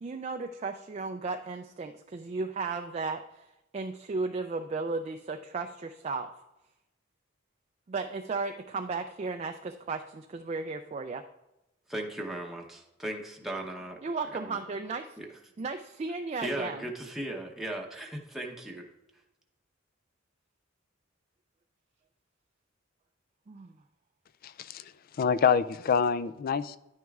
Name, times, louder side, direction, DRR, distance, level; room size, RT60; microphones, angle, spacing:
voice 1, 0.0-6.3 7.9-11.2 14.0-15.2 15.6-16.8 23.5-23.7, right 4 dB, 35° right, 5 dB, 0.3 m, -35 dB
voice 2, 11.9-14.0 14.3-14.6 15.2-15.3 16.4-18.9, right 1 dB, ahead, 0 dB, 0.8 m, -37 dB
voice 3, 24.4-24.8 25.2-26.8, left 6 dB, 45° left, 16 dB, 0.3 m, -26 dB
10.5 x 9.2 x 2.4 m, 0.93 s
head